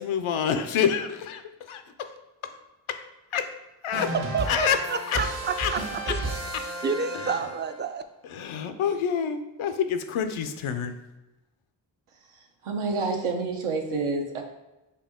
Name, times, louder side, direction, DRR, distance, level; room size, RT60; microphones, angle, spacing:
voice 1, 0.0-1.4 1.7-2.1 2.4-2.5 2.9-3.0 3.3-3.5 3.8-4.1 4.5-5.3 5.6-5.7 6.1-6.2 6.5-6.6 7.1-7.4 8.2-10.9, left 7 dB, 85° left, 8 dB, 0.6 m, -27 dB
sound 1, 3.9-7.8, right 1 dB, 65° right, 1.3 m, -33 dB
voice 2, 4.3-6.3 6.8-8.0, right 5 dB, 25° right, 9 dB, 0.3 m, -30 dB
voice 3, 12.6-14.4, right 3 dB, 85° right, 2 dB, 0.8 m, -28 dB
4.6 x 2.8 x 3.5 m, 1.0 s
cardioid pair, 45°, 48 cm